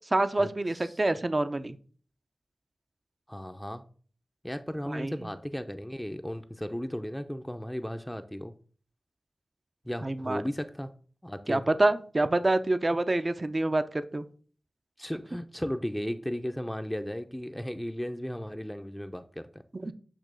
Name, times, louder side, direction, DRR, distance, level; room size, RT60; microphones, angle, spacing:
voice 1, 0.1-1.8 4.9-5.1 10.0-10.4 11.5-14.2 19.8-19.9, right 2 dB, 35° right, 10 dB, 0.6 m, -27 dB
voice 2, 3.3-3.8 4.4-8.6 9.8-10.9 11.2-11.6 15.0-19.6, equal, 5° left, 7 dB, 0.6 m, -35 dB
8.8 x 3.0 x 6.2 m, 0.42 s
wide cardioid pair, 60°, 0 cm